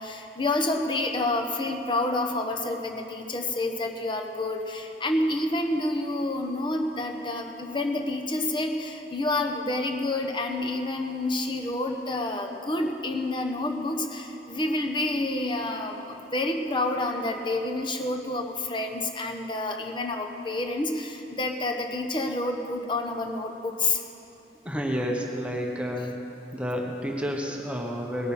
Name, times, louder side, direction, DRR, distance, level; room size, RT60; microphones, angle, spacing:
voice 1, 0.0-24.0 25.9-26.1, left 2 dB, 30° left, 3 dB, 1.1 m, -28 dB
voice 2, 24.6-26.1 26.5-28.3, equal, 5° right, 0 dB, 1.1 m, -30 dB
19.0 x 9.1 x 5.5 m, 2.9 s
head